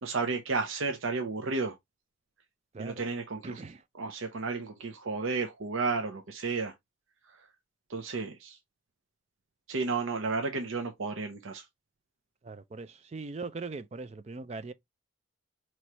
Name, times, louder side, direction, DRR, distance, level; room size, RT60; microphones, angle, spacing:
voice 1, 0.0-1.7 2.8-3.6 4.0-6.7 7.9-8.6 9.7-11.6, right 4 dB, 80° right, 0.7 m, -32 dB
voice 2, 3.4-3.8 12.4-14.7, right 3 dB, 30° right, 0.3 m, -40 dB
4.7 x 3.1 x 2.8 m
head